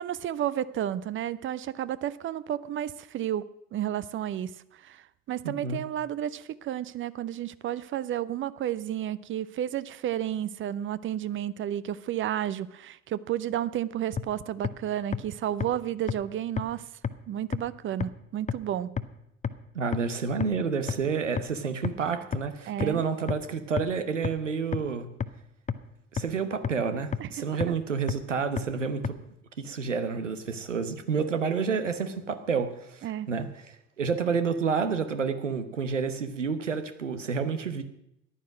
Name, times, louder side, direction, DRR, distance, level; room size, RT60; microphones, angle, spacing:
voice 1, 0.0-4.5 4.8-16.8 17.3-18.9 22.7-23.0 27.2-27.4 33.0-33.3, right 11 dB, 35° right, 17 dB, 0.7 m, -32 dB
voice 2, 5.4-5.8 19.7-25.1 26.1-29.1 29.6-37.8, right 5 dB, 80° right, 10 dB, 1.1 m, -29 dB
sound 1, 14.2-14.3 14.6-14.7 15.1-15.2 15.6-15.7 16.1-16.2 16.6-16.7 17.0-17.1 17.5-17.6 18.0-18.1 18.5-18.6 19.0-19.1 19.4-19.5 19.9-20.0 20.4-20.5 20.9-21.0 21.4-21.5 21.8-21.9 22.3-22.4 22.8-22.9 23.3-23.4 23.8-23.9 24.2-24.3 24.7-24.8 25.2-25.3 25.7-25.8 26.2-26.3 26.6-26.7 27.1-27.2 27.6-27.7 28.1-28.2 28.6-28.7 29.0-29.1, left 7 dB, 20° left, 0.7 m, -28 dB
14.0 x 11.5 x 6.3 m, 0.79 s
figure-of-eight pair, 60°, 36 cm